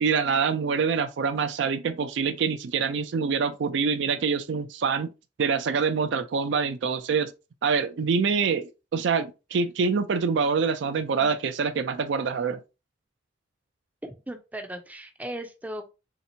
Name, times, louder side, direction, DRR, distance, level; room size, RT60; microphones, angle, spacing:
voice 1, 0.0-5.1 5.4-7.3 7.6-12.6, right 5 dB, 70° right, 0.4 m, -25 dB
voice 2, 14.0-15.9, right 1 dB, 10° right, 0.4 m, -37 dB
3.3 x 2.9 x 2.7 m
head